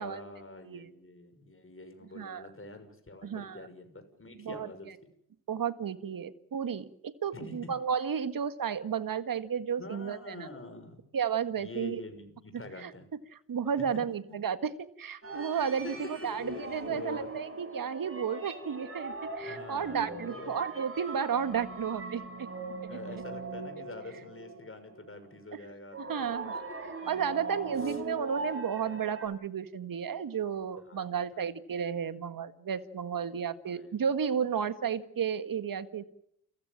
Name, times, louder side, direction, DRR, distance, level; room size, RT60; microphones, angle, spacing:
voice 1, 0.0-4.9 7.3-7.8 9.8-11.0 11.6-13.1 13.8-13.9 15.5-15.9 16.2-17.3 19.4-20.6 22.9-26.3 27.8-28.0 30.9-31.5 33.7-34.0, left 2 dB, 30° left, 8 dB, 6.5 m, -46 dB
voice 2, 3.2-3.7 4.4-4.7 5.5-10.5 11.1-12.0 12.8-12.9 13.5-22.5 22.8-23.0 25.5-25.6 26.0-26.6 27.1-36.0, right 7 dB, 45° right, 12 dB, 1.8 m, -33 dB
sound 1, 15.2-25.2 25.9-29.3, right 2 dB, 30° right, 7.1 m, -41 dB
29.0 x 15.5 x 7.4 m, 0.75 s
hypercardioid pair, 45°, 45 cm